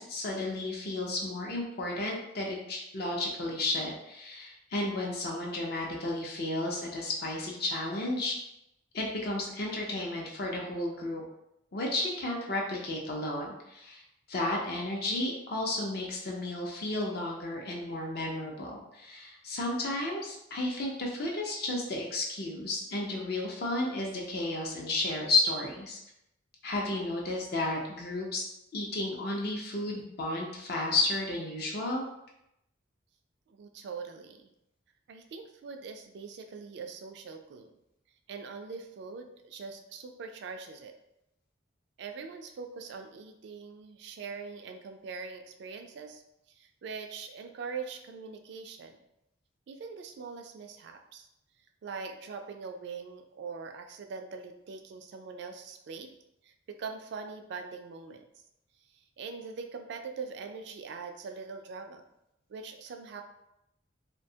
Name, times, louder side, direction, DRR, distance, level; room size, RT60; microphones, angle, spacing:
voice 1, 0.0-8.3 8.9-11.2 11.7-14.0 14.3-26.0 26.6-28.5 28.7-32.0, left 2 dB, 55° left, -1 dB, 0.5 m, -32 dB
voice 2, 33.5-34.5 35.1-37.7 38.3-40.9 42.0-46.2 46.5-49.0 49.7-51.3 51.8-56.1 56.4-56.5 56.8-58.2 58.9-62.0 62.5-63.2, right 5 dB, 60° right, 5 dB, 0.3 m, -42 dB
2.7 x 2.2 x 2.7 m, 0.83 s
head